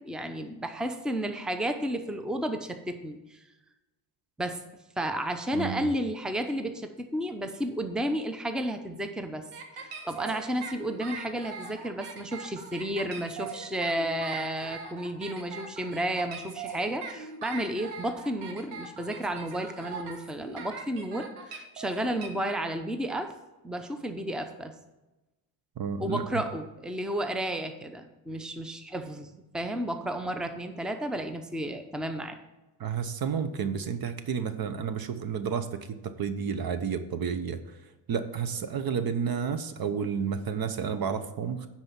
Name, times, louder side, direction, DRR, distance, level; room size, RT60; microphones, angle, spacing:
voice 1, 0.0-3.4 4.4-4.6 5.0-9.4 9.8-23.3 23.6-24.7 25.9-32.4, right 1 dB, ahead, 7 dB, 0.8 m, -32 dB
voice 2, 5.5-5.9 25.8-26.4 32.8-37.6 38.1-41.7, right 6 dB, 45° right, 10 dB, 0.9 m, -31 dB
sound 1, 9.5-22.3, right 5 dB, 80° right, 1.7 m, -41 dB
9.6 x 4.4 x 7.1 m, 1.0 s
supercardioid pair, 85°, 50 cm